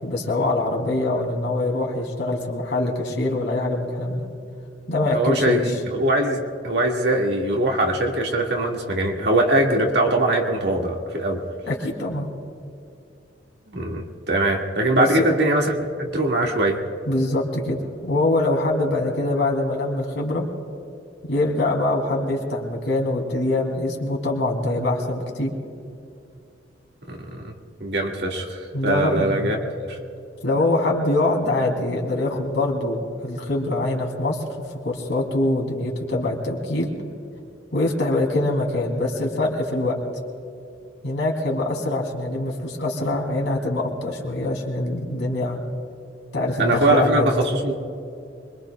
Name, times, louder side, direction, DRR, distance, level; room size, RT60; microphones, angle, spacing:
voice 1, 0.0-4.3 4.9-5.8 11.7-12.3 15.0-15.3 17.0-20.5 21.2-25.5 28.7-29.5 30.4-34.4 34.8-36.9 37.7-40.0 41.0-45.6 46.3-47.3, left 2 dB, 70° left, 0 dB, 2.9 m, -24 dB
voice 2, 5.1-11.4 13.7-16.8 27.1-27.5 27.8-29.6 29.9-30.0 46.6-47.7, right 1 dB, 60° right, 0 dB, 1.9 m, -22 dB
25.5 x 22.5 x 2.3 m, 2.5 s
head